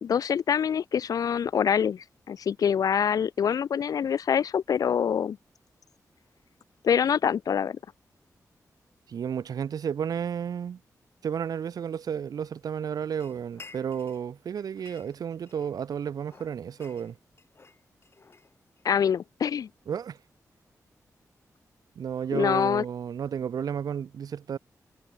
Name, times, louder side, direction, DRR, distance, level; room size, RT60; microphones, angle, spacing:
voice 1, 0.0-5.4 6.8-7.8 18.8-19.7 22.3-22.8, left 8 dB, 70° left, 0.4 m, -25 dB
voice 2, 9.1-10.8 11.2-17.2 19.9-20.2 22.0-24.6, right 8 dB, 80° right, 1.0 m, -32 dB
sound 1, 13.2-14.3 14.6-15.9 16.2-18.9, left 4 dB, 40° left, 4.6 m, -52 dB
cardioid pair, 80°, 6 cm